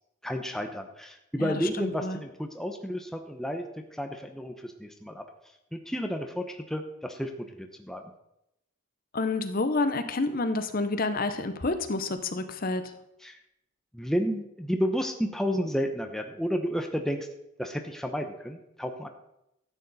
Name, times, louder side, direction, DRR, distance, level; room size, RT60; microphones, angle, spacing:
voice 1, 0.2-5.2 5.7-8.0 13.2-13.4 13.9-17.3 17.6-19.1, equal, ahead, 4 dB, 0.8 m, -31 dB
voice 2, 1.4-2.2 9.1-12.9, left 3 dB, 40° left, 9 dB, 0.8 m, -29 dB
13.0 x 9.1 x 4.1 m, 0.84 s
head